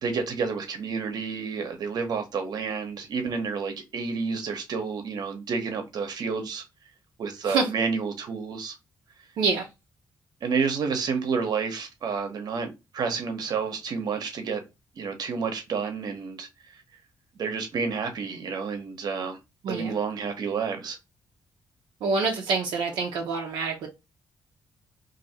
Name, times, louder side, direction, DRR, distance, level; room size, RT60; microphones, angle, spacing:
voice 1, 0.0-6.6 7.2-8.8 10.4-14.6 15.0-16.8 17.3-19.4 19.7-21.0, right 5 dB, 65° right, 1.0 m, -30 dB
voice 2, 22.0-23.9, right 4 dB, 85° right, 0.7 m, -26 dB
2.7 x 2.7 x 4.1 m
cardioid pair, 85°, 8 cm